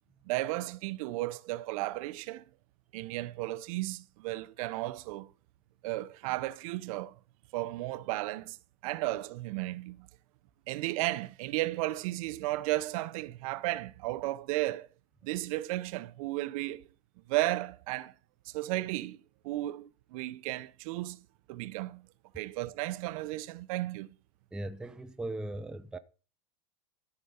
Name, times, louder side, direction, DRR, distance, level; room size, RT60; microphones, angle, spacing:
voice 1, 0.3-2.4 2.9-5.3 5.8-7.2 7.5-8.6 8.8-10.1 10.7-14.9 15.2-16.8 17.3-18.1 18.5-19.2 19.4-21.2 21.5-22.0 22.3-24.1, right 17 dB, 55° right, 0.7 m, -34 dB
voice 2, 24.5-26.0, right 2 dB, 5° right, 0.5 m, -38 dB
13.5 x 5.0 x 5.5 m
supercardioid pair, 135°, 21 cm